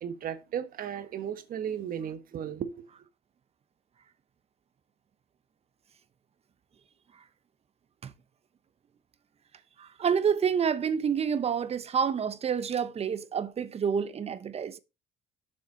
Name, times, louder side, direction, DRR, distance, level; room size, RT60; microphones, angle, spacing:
voice 1, 0.0-2.8, right 9 dB, 55° right, 1.4 m, -35 dB
voice 2, 9.8-14.8, right 7 dB, 35° right, 0.9 m, -28 dB
7.2 x 5.8 x 5.1 m
cardioid pair, 110°, 17 cm